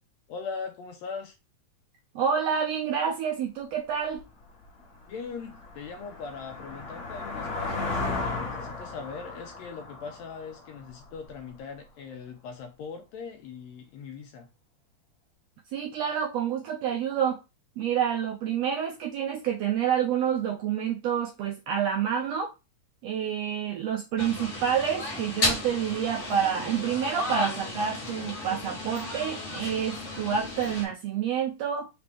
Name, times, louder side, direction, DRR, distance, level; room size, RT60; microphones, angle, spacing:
voice 1, 0.3-1.4 5.1-14.5, left 5 dB, 75° left, 1.7 m, -40 dB
voice 2, 2.1-4.2 15.7-17.4 17.8-22.5 23.0-31.9, right 8 dB, 75° right, 1.5 m, -28 dB
sound 1, 4.2-4.3 4.8-11.4, left 3 dB, 35° left, 1.8 m, -35 dB
sound 2, 24.2-30.9, left 2 dB, 55° left, 0.8 m, -33 dB
5.0 x 3.1 x 3.4 m
omnidirectional pair, 3.5 m